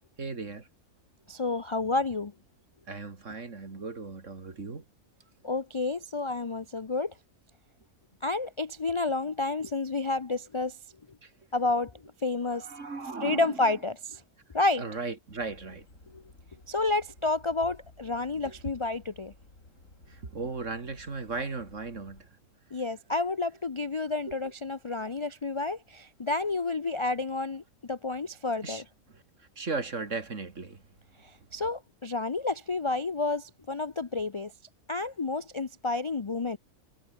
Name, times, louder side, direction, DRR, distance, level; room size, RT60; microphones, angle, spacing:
voice 1, 0.2-0.7 2.9-4.8 11.2-11.3 12.4-13.6 14.8-15.8 18.4-18.5 20.1-22.3 24.3-24.4 28.6-28.8 29.6-30.8, right 4 dB, 60° right, 3.0 m, -36 dB
voice 2, 1.3-2.3 5.4-7.1 8.2-10.8 11.5-11.9 12.2-12.7 13.2-14.2 14.5-14.8 16.1-16.2 16.7-19.3 22.7-28.8 31.2-34.5 34.9-36.6, left 3 dB, 35° left, 0.5 m, -30 dB
sound 1, 15.3-22.2, left 2 dB, 65° left, 7.0 m, -55 dB
omnidirectional pair, 1.4 m